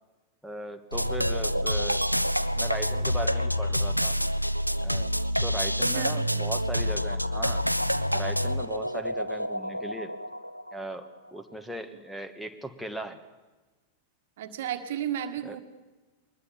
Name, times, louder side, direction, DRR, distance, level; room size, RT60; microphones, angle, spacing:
voice 1, 0.4-2.0 2.6-4.2 4.8-5.1 5.4-7.6 8.1-10.1 10.7-13.2 15.4-15.6, right 1 dB, ahead, 9 dB, 1.6 m, -38 dB
sound 1, 0.9-11.1, equal, 90° right, 0.6 m, -27 dB
voice 2, 5.8-6.2 14.4-15.6, right 10 dB, 55° right, 8 dB, 1.7 m, -33 dB
23.0 x 20.5 x 7.1 m, 1.2 s
figure-of-eight pair, 90°, 0 cm